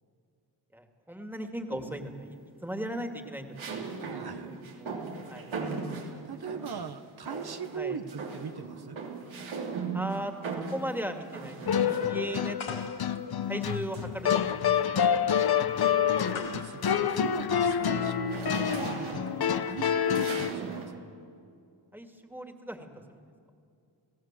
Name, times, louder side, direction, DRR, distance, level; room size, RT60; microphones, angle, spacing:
voice 1, 0.7-4.2 4.5-4.9 5.3-5.4 6.7-6.8 7.7-8.0 9.9-10.3 10.7-13.1 13.5-14.6 14.9-15.4 17.8-17.9 21.9-23.2, equal, 5° right, 5 dB, 2.4 m, -38 dB
sound 1, 1.7-2.2 3.6-6.9 7.3-7.8 8.1-12.5 13.6-15.0 15.5-15.8 16.2-20.9, right 4 dB, 90° right, 3.4 m, -39 dB
voice 2, 4.0-4.6 6.0-9.0 16.3-21.0, right 6 dB, 55° right, 8 dB, 1.3 m, -40 dB
sound 2, 11.7-20.5, left 8 dB, 50° left, 0.9 m, -27 dB
sound 3, 12.6-18.2, left 5 dB, 85° left, 2.7 m, -45 dB
29.0 x 17.0 x 7.6 m, 2.4 s
cardioid pair, 80°, 46 cm